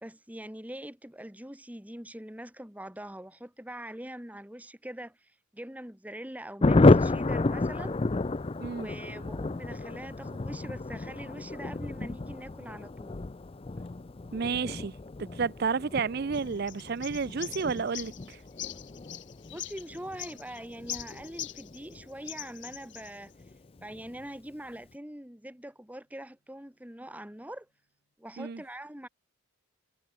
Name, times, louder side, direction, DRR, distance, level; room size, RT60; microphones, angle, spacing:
voice 1, 0.0-8.0 8.7-13.2 19.5-23.3 23.8-27.7 28.2-29.1, right 1 dB, 5° right, 1.5 m, -43 dB
Thunder, 6.6-22.7 23.0-23.1 23.4-23.5 23.8-24.2, left 2 dB, 25° left, 0.4 m, -30 dB
voice 2, 14.3-18.4 28.4-28.6, right 5 dB, 45° right, 0.4 m, -31 dB
sound 1, 16.3-21.9 22.2-23.2, left 13 dB, 55° left, 1.8 m, -42 dB
Gong, 25.1-28.0, left 1 dB, 85° left, 6.9 m, -65 dB
head